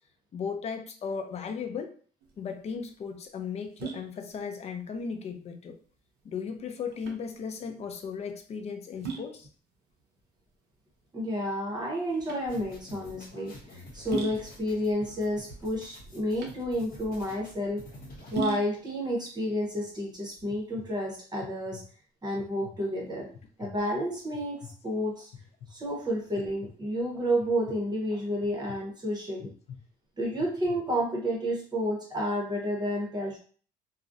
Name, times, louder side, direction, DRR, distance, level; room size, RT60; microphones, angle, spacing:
voice 1, 0.3-1.9 2.4-5.8 6.2-9.5, left 6 dB, 40° left, 6 dB, 0.4 m, -36 dB
sound 1, 2.2-20.8, right 7 dB, 85° right, 0.6 m, -42 dB
voice 2, 11.1-17.8 18.3-21.8 22.2-23.3 23.6-25.3 25.7-29.5 30.2-33.4, equal, 25° right, -2 dB, 0.8 m, -30 dB
sound 2, 12.5-18.3, equal, 55° left, 1.0 m, -48 dB
sound 3, 19.5-19.9 20.4-20.9 21.4-21.8 22.3-22.8 23.3-23.8 24.3-24.8 25.3-25.7 26.4-26.7 27.4-27.8 28.4-28.8 29.4-29.8 30.3-30.8, left 7 dB, 90° left, 0.6 m, -46 dB
2.3 x 2.0 x 2.6 m, 0.43 s
cardioid pair, 110°, 17 cm